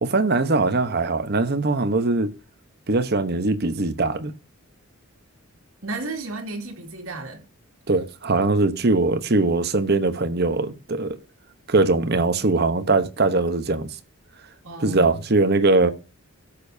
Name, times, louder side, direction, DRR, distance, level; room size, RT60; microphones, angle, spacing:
voice 1, 0.0-2.3 2.9-4.3 7.9-11.2 11.7-13.9 14.8-15.9, right 3 dB, 45° right, 1.0 m, -21 dB
voice 2, 5.8-7.4 14.6-15.2, right 2 dB, 70° right, 2.5 m, -33 dB
18.0 x 6.9 x 2.7 m
head